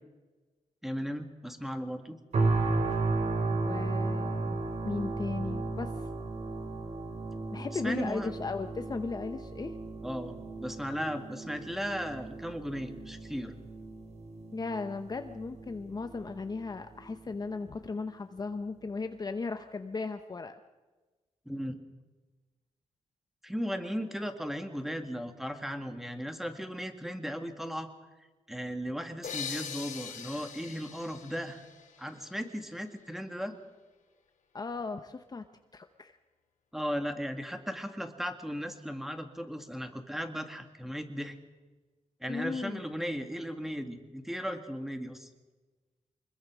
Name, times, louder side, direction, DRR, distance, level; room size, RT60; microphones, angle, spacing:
voice 1, 0.8-2.2 7.7-8.3 10.0-13.5 21.5-21.7 23.4-27.9 28.5-31.6 32.0-33.6 36.7-41.4 42.2-45.3, equal, ahead, 6 dB, 2.0 m, -36 dB
sound 1, 2.3-17.3 17.8-18.0, right 3 dB, 60° right, 4.0 m, -34 dB
voice 2, 3.6-6.1 7.5-9.7 14.5-20.6 34.5-35.5 35.7-36.2 42.3-42.9, left 4 dB, 30° left, 8 dB, 0.9 m, -36 dB
sound 2, 29.2-32.8, left 7 dB, 85° left, 3.0 m, -42 dB
25.0 x 21.5 x 6.3 m, 1.2 s
wide cardioid pair, 130°, 13 cm